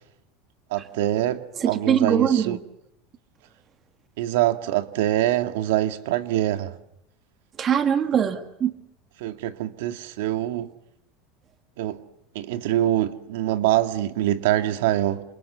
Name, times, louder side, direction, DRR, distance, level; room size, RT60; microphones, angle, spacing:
voice 1, 0.7-2.6 4.2-6.7 9.2-10.7 11.8-12.0 12.3-15.2, right 13 dB, 75° right, 2.1 m, -24 dB
voice 2, 1.6-2.6 7.6-8.7, right 8 dB, 20° right, 1.8 m, -22 dB
28.5 x 28.5 x 7.0 m
supercardioid pair, 180°, 0 cm